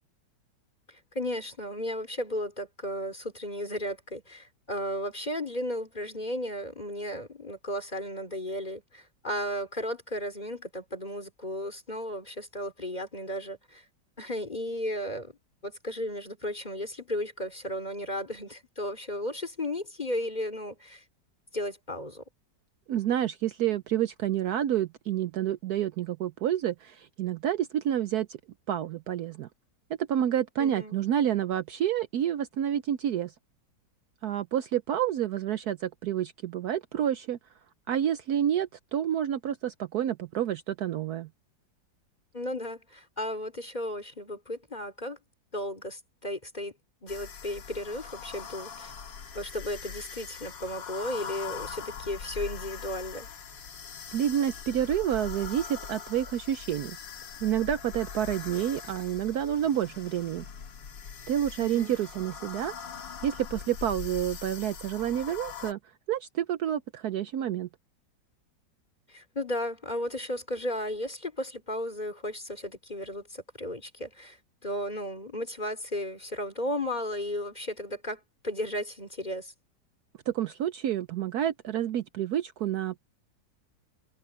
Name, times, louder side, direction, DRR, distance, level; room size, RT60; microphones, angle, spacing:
voice 1, 0.9-13.9 14.2-15.3 15.6-21.0 21.5-22.2 30.6-31.0 42.3-45.2 45.5-46.7 47.0-48.9 49.3-53.3 61.6-62.0 69.1-74.4 74.6-79.5, left 1 dB, 25° left, 3.7 m, -34 dB
voice 2, 22.9-28.4 28.7-29.5 30.0-33.3 34.2-37.4 37.9-41.3 54.1-57.0 57.4-60.4 61.3-62.7 63.2-65.8 66.1-67.7 80.3-83.0, right 10 dB, 70° right, 1.1 m, -29 dB
sound 1, 47.1-65.7, left 7 dB, 90° left, 2.3 m, -42 dB
omnidirectional pair, 1.9 m